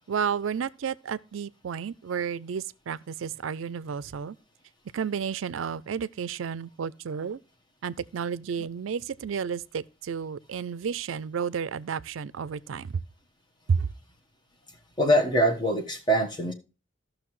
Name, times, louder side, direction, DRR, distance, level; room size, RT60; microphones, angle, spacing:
voice 1, 0.1-4.4 4.9-7.4 7.8-12.9 13.7-13.9, right 6 dB, 80° right, 0.4 m, -31 dB
voice 2, 15.0-16.5, equal, 25° left, 1.2 m, -23 dB
14.5 x 6.3 x 3.1 m
head